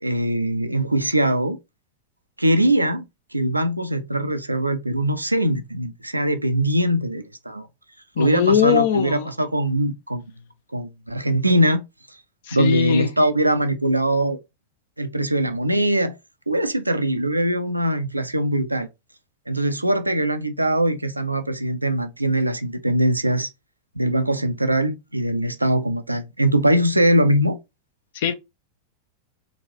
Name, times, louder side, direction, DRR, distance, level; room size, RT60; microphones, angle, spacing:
voice 1, 0.0-1.6 2.4-3.0 3.3-7.7 8.2-10.2 10.7-11.8 12.5-14.4 15.0-16.2 16.5-18.9 19.5-23.5 24.0-27.6, right 1 dB, 85° right, 0.4 m, -21 dB
voice 2, 8.2-9.3 12.5-13.1 28.1-28.3, left 8 dB, 55° left, 0.7 m, -20 dB
4.0 x 2.5 x 2.8 m
figure-of-eight pair, 90°, 0 cm